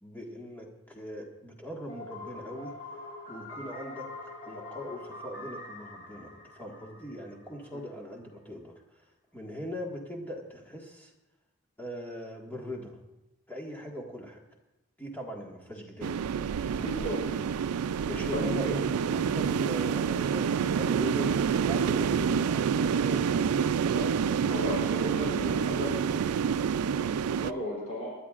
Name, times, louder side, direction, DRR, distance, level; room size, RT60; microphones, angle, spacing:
voice 1, 0.0-2.7 3.3-8.7 9.3-11.1 11.8-13.0 13.5-14.4 15.0-17.4 18.1-23.5 24.0-24.5, equal, 10° left, -1 dB, 1.7 m, -40 dB
sound 1, 1.9-7.7, left 2 dB, 75° left, 5.5 m, -44 dB
sound 2, 16.0-27.5, right 7 dB, 85° right, 0.4 m, -28 dB
voice 2, 16.8-17.3 18.3-18.9 22.0-22.1 23.9-24.1 24.5-26.1 26.9-27.1 27.4-28.1, left 1 dB, 30° left, -4 dB, 3.2 m, -35 dB
25.5 x 11.5 x 2.5 m, 0.97 s
head